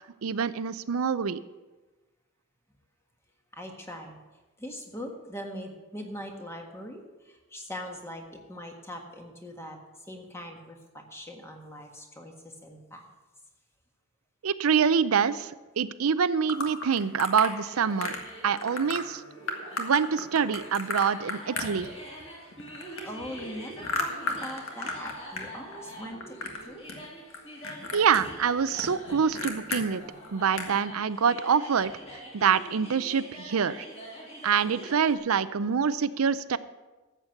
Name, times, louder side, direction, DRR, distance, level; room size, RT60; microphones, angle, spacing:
voice 1, 0.2-1.4 14.4-18.1 18.4-19.2 19.8-21.9 27.9-30.0 30.3-31.9 32.3-33.9 34.4-36.6, right 6 dB, 80° right, 15 dB, 0.5 m, -25 dB
voice 2, 3.5-4.2 4.6-9.8 10.1-13.1 23.0-26.8, equal, 10° left, 2 dB, 1.5 m, -41 dB
sound 1, 16.5-17.5 18.0-18.3 18.6-19.0 19.5-22.2 22.5-25.5 25.7-26.6 26.9-27.4 27.6-29.8 30.2-30.3 30.5-30.8, left 3 dB, 70° left, 1.7 m, -34 dB
sound 2, 17.6-35.2, right 1 dB, 30° left, 3.5 m, -45 dB
13.5 x 8.1 x 5.8 m, 1.2 s
head